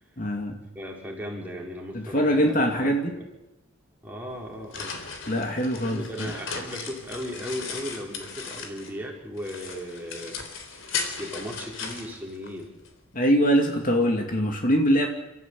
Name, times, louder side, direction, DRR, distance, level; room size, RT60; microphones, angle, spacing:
voice 1, 0.2-0.6 1.9-3.1 5.3-6.3 13.1-15.1, equal, 40° left, 3 dB, 2.5 m, -23 dB
voice 2, 0.7-2.5 2.8-3.2 4.0-5.4 5.7-10.4 10.7-12.7, equal, 10° right, -2 dB, 5.0 m, -37 dB
sound 1, 4.3-9.0 9.4-12.9, left 5 dB, 65° left, 3.7 m, -37 dB
29.5 x 14.5 x 8.5 m, 0.97 s
head